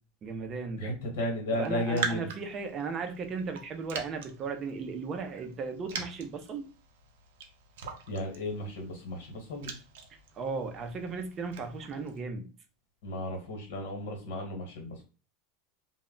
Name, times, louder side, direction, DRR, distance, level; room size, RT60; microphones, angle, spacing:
voice 1, 0.2-0.9 1.5-6.7 10.1-12.5, right 4 dB, 20° right, 5 dB, 0.4 m, -36 dB
voice 2, 0.8-2.3 8.1-9.8 13.0-15.0, left 1 dB, 80° left, 2 dB, 1.0 m, -34 dB
Raindrop, 1.5-12.2, right 6 dB, 85° right, 0.5 m, -43 dB
2.1 x 2.0 x 3.7 m, 0.34 s
supercardioid pair, 175°, 0 cm